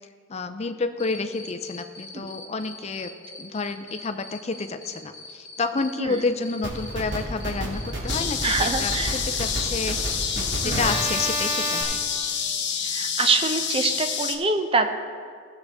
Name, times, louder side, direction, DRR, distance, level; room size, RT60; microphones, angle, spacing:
voice 1, 0.3-3.1 3.4-10.0 10.4-12.0, left 3 dB, 35° left, 8 dB, 0.5 m, -30 dB
Cricket, 1.0-13.0, left 3 dB, 15° left, 1.7 m, -42 dB
sound 1, 6.6-11.8, right 1 dB, 65° right, 2.0 m, -29 dB
sound 2, 8.1-14.4, left 7 dB, 60° left, 0.8 m, -28 dB
voice 2, 8.4-9.2 10.6-10.9 12.8-14.9, right 3 dB, 30° right, 7 dB, 0.6 m, -25 dB
17.0 x 6.7 x 3.5 m, 2.1 s
head